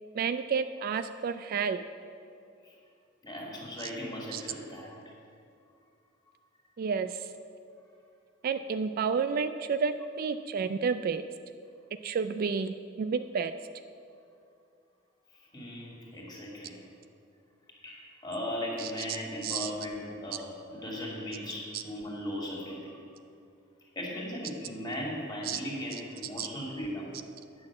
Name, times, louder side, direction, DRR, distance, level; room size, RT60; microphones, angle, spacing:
voice 1, 0.1-1.9 3.8-3.9 4.3-4.4 6.8-7.3 8.4-11.2 12.0-13.5 18.8-19.2 19.4-19.7 21.7-21.8 25.4-25.6 26.4-26.5, right 6 dB, 50° right, 10 dB, 0.3 m, -31 dB
voice 2, 3.2-5.1 15.5-16.7 17.8-23.0 24.0-27.1, left 1 dB, 20° left, -2 dB, 2.3 m, -37 dB
9.6 x 6.3 x 7.5 m, 2.4 s
head